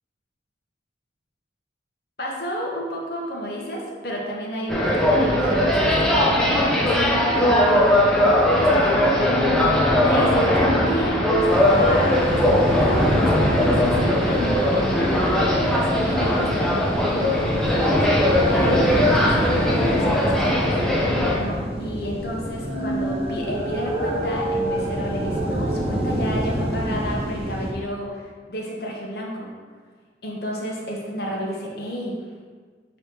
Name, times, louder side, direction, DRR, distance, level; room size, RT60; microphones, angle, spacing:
voice 1, 2.2-9.6 10.0-20.6 21.3-29.5 30.2-32.1, equal, 60° left, -2 dB, 1.2 m, -31 dB
sound 1, 4.7-21.4, left 1 dB, 5° left, 0.8 m, -19 dB
sound 2, 11.5-27.7, equal, 35° right, 0.6 m, -27 dB
sound 3, 22.5-26.8, right 1 dB, 15° right, 1.2 m, -29 dB
6.8 x 3.3 x 4.6 m, 1.5 s
head